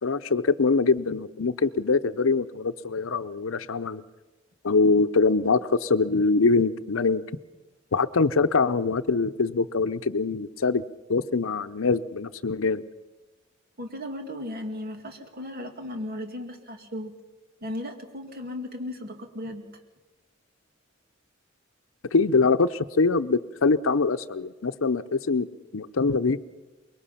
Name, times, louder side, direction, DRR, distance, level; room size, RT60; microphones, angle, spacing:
voice 1, 0.0-4.0 4.6-7.2 7.9-10.8 11.1-12.8 22.1-25.5 25.7-26.4, left 4 dB, 80° left, 12 dB, 0.7 m, -23 dB
voice 2, 13.8-17.1 17.6-19.7, left 1 dB, 50° right, 4 dB, 2.3 m, -36 dB
24.5 x 22.0 x 5.7 m, 1.2 s
head